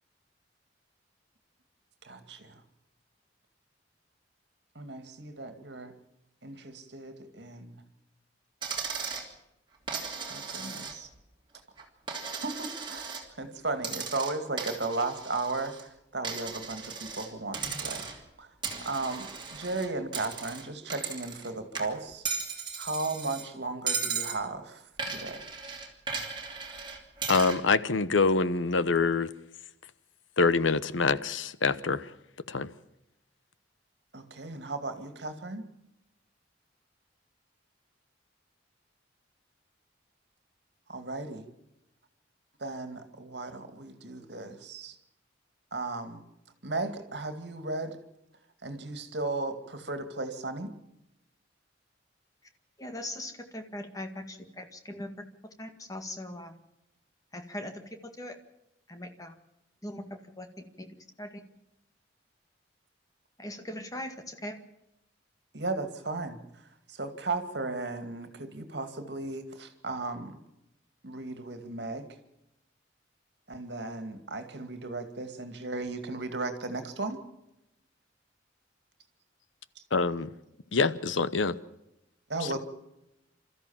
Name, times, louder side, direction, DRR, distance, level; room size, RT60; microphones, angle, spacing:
voice 1, 2.1-2.5 4.8-5.9 6.4-7.7 10.3-11.1 12.4-18.1 18.4-18.5 18.8-22.2 22.8-25.4 34.1-35.7 40.9-41.4 42.6-45.0 45.7-46.2 46.6-48.0 48.6-50.7 65.5-66.4 66.9-70.4 71.0-72.1 73.5-77.2 82.3-82.6, right 3 dB, 60° right, 2.3 m, -35 dB
Coin (dropping), 8.6-9.3 9.9-11.2 11.5-13.3 13.8-15.8 16.2-17.3 17.5-18.3 18.6-21.5 21.7-23.4 23.9-24.4 25.0-27.6, right 5 dB, 25° right, 2.9 m, -36 dB
voice 2, 27.3-29.3 30.4-32.1 32.5-32.7 79.9-80.3 80.7-81.6 82.4-82.6, left 4 dB, 90° left, 0.9 m, -25 dB
voice 3, 52.8-55.1 55.6-56.6 57.3-57.8 58.2-58.4 58.9-59.3 59.8-60.0 60.4-60.5 60.8-60.9 61.2-61.4 63.4-64.6, left 1 dB, 20° left, 1.9 m, -40 dB
28.0 x 14.0 x 7.3 m
head